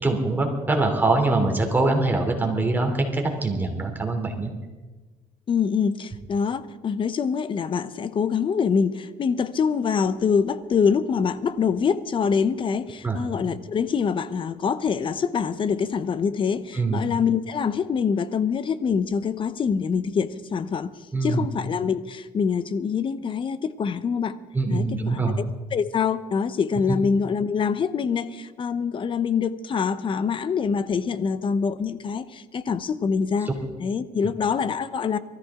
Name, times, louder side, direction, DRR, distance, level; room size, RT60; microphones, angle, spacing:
voice 1, 0.0-4.5 13.0-13.2 16.7-17.0 21.1-21.4 24.5-25.4, right 2 dB, 15° right, 2 dB, 3.1 m, -23 dB
voice 2, 5.5-24.4 24.7-33.5 33.8-35.2, left 6 dB, 40° left, 14 dB, 0.9 m, -25 dB
23.5 x 14.0 x 3.7 m, 1.3 s
cardioid pair, 105°, 14 cm